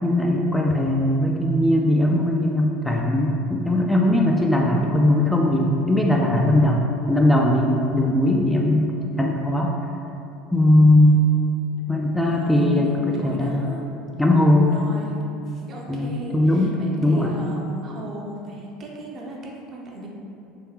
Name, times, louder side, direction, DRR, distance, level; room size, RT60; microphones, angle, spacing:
voice 1, 0.0-8.9 9.2-9.8 10.5-11.2 11.9-13.7 14.2-14.7 15.9-17.3, left 1 dB, 5° left, -1 dB, 0.3 m, -19 dB
voice 2, 12.2-13.9 14.7-20.1, right 1 dB, 45° right, -2 dB, 0.6 m, -37 dB
3.5 x 2.2 x 3.3 m, 2.7 s
hypercardioid pair, 70°, 0 cm